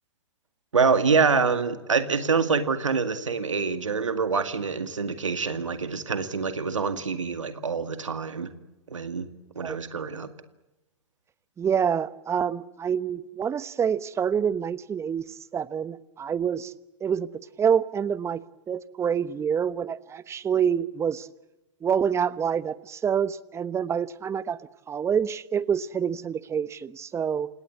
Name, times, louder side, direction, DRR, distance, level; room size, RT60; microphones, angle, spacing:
voice 1, 0.7-8.5 8.9-9.3 9.6-10.3, right 5 dB, 85° right, 9 dB, 2.1 m, -25 dB
voice 2, 11.6-15.2 15.5-16.7 17.0-17.3 17.6-18.4 18.7-21.3 21.8-24.6 24.9-27.5, right 7 dB, 15° right, 17 dB, 1.0 m, -27 dB
28.5 x 18.0 x 8.3 m, 0.99 s
hypercardioid pair, 115°, 16 cm